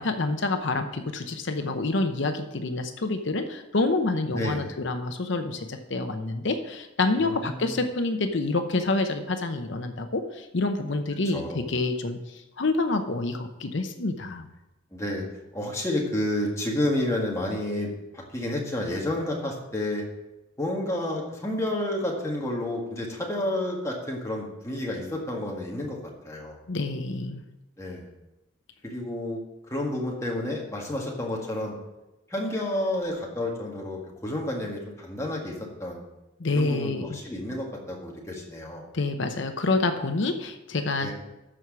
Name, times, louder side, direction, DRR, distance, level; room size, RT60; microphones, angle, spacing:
voice 1, 0.0-11.4 11.7-12.2 12.6-14.5 26.7-27.4 36.4-37.2 38.9-41.1, left 3 dB, 55° left, 7 dB, 0.7 m, -27 dB
voice 2, 4.3-4.7 7.2-7.8 11.3-11.6 14.9-15.2 15.5-20.0 20.6-26.0 26.2-26.6 27.8-28.1 28.8-29.4 29.7-31.7 32.3-35.5 35.8-36.0 36.5-38.8 41.0-41.1, left 1 dB, 15° left, -2 dB, 1.7 m, -30 dB
12.5 x 4.7 x 6.1 m, 1.0 s
head